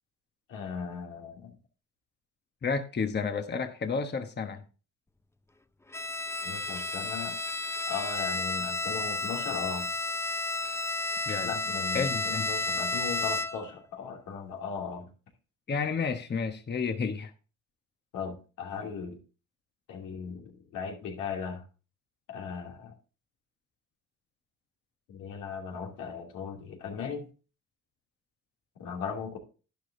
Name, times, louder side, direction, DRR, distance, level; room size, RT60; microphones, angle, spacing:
voice 1, 0.5-1.5 6.4-7.3 7.9-9.9 11.4-15.1 18.1-19.2 19.9-21.6 22.3-22.9 25.1-27.2 28.8-29.4, left 6 dB, 90° left, 2.8 m, -37 dB
voice 2, 2.6-4.6 11.3-11.5 11.9-12.5 15.7-17.3, left 5 dB, 35° left, 1.2 m, -31 dB
Bowed string instrument, 5.9-13.8, left 2 dB, 10° left, 0.6 m, -32 dB
11.5 x 10.0 x 2.7 m
cardioid pair, 90°, 30 cm